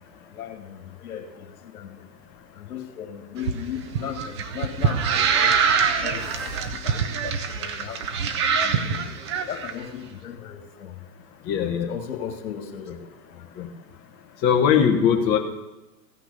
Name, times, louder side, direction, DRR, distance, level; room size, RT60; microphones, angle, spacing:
voice 1, 0.3-2.0 2.6-5.6 6.0-8.9 9.5-11.0 11.8-13.4, left 9 dB, 60° left, 6 dB, 2.0 m, -37 dB
sound 1, 3.4-9.7, right 6 dB, 20° right, 0.4 m, -24 dB
sound 2, 5.3-6.9, left 1 dB, ahead, 2.0 m, -39 dB
voice 2, 11.5-11.9 13.6-13.7 14.4-15.4, left 8 dB, 20° left, 1 dB, 1.0 m, -20 dB
15.0 x 6.0 x 7.0 m, 1.0 s
hypercardioid pair, 120°, 49 cm